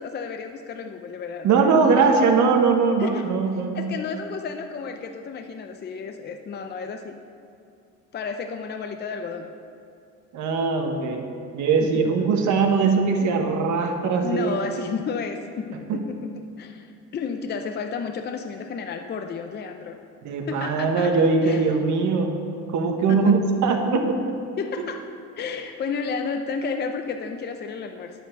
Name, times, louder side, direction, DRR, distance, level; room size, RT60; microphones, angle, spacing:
voice 1, 0.0-2.2 3.0-3.2 3.7-7.2 8.1-9.5 13.2-13.3 14.2-16.3 16.6-20.0 20.5-21.6 23.1-23.4 24.6-25.0 25.4-28.1, left 5 dB, 35° left, 5 dB, 0.6 m, -32 dB
voice 2, 1.4-3.9 10.3-14.6 15.9-16.0 20.2-22.3 22.7-24.4, right 4 dB, 70° right, 4 dB, 1.4 m, -21 dB
9.7 x 7.9 x 6.6 m, 2.5 s
cardioid pair, 120°, 31 cm